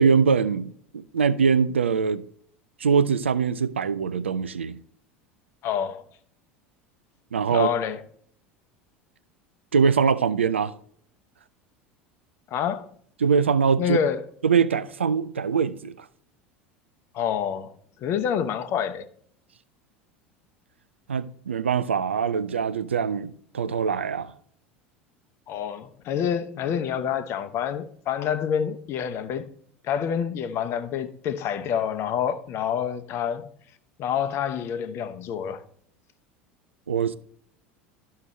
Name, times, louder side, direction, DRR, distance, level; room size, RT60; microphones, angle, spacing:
voice 1, 0.0-2.2 2.8-4.8 7.3-7.7 9.7-10.7 13.2-14.0 14.4-16.1 21.1-24.3 36.9-37.2, right 6 dB, 80° right, 0.4 m, -23 dB
voice 2, 5.6-6.0 7.5-8.0 12.5-12.9 13.8-14.2 17.1-17.7 18.0-19.1 25.5-29.5 29.8-33.5 34.0-35.6, left 8 dB, 45° left, 0.8 m, -27 dB
12.5 x 5.6 x 3.1 m
figure-of-eight pair, 75°, 6 cm